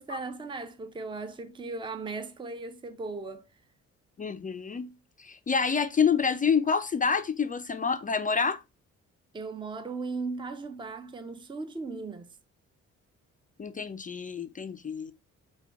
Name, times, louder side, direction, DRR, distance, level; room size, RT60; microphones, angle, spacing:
voice 1, 0.0-3.5 9.3-12.3, right 3 dB, 15° right, 0.6 m, -37 dB
voice 2, 4.2-4.9 5.2-8.6 13.6-15.1, left 6 dB, 25° left, 0.4 m, -27 dB
5.7 x 2.3 x 3.4 m
cardioid pair, 90°, 30 cm